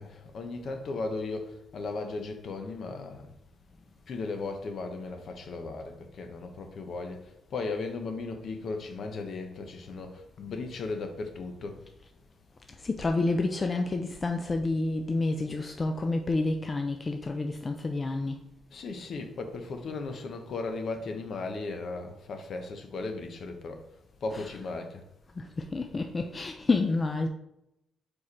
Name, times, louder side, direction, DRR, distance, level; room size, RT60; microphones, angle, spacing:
voice 1, 0.0-3.3 4.1-11.8 18.7-23.8 24.2-25.0, left 3 dB, 60° left, 1.0 m, -36 dB
voice 2, 12.8-18.4 24.3-24.5 25.4-27.3, left 3 dB, 30° left, 0.5 m, -29 dB
4.8 x 4.6 x 4.2 m
cardioid pair, 90°, 0 cm